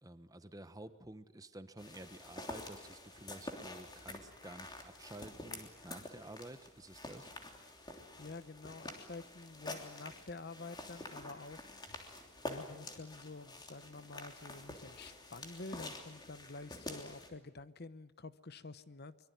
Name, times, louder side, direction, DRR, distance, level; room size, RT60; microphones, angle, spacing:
voice 1, 0.0-7.3, right 1 dB, 15° right, 11 dB, 1.1 m, -51 dB
sound 1, 1.8-17.3, left 2 dB, 20° left, 3.2 m, -48 dB
voice 2, 7.8-19.3, left 3 dB, 45° left, 14 dB, 0.9 m, -49 dB
24.5 x 23.0 x 9.4 m, 1.0 s
head